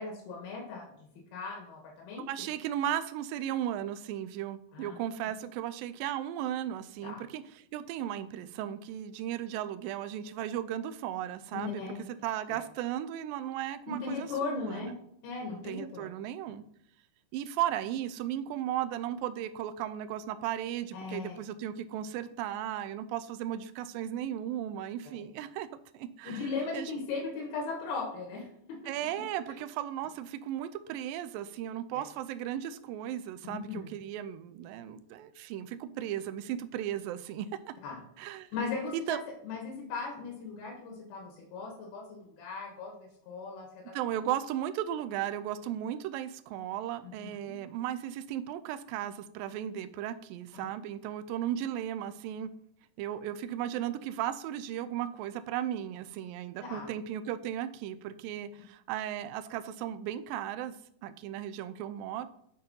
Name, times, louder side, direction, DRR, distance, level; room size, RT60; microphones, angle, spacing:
voice 1, 0.0-2.3 4.7-5.0 7.0-7.2 11.5-12.0 12.5-12.6 13.9-14.9 15.2-16.1 20.9-21.4 26.3-28.5 32.0-32.1 33.4-33.9 37.8-38.0 38.5-39.2 39.5-43.8 47.0-47.1 47.5-47.6 50.5-50.7 56.7-56.9, left 4 dB, 90° left, -2 dB, 3.4 m, -38 dB
voice 2, 2.3-7.4 7.7-15.0 15.5-16.6 17.3-25.7 25.9-26.9 28.9-37.7 38.2-38.5 38.9-39.2 43.9-52.5 53.0-60.7 61.0-62.3, right 11 dB, 80° right, 11 dB, 2.2 m, -36 dB
7.9 x 4.2 x 5.4 m, 0.72 s
omnidirectional pair, 4.3 m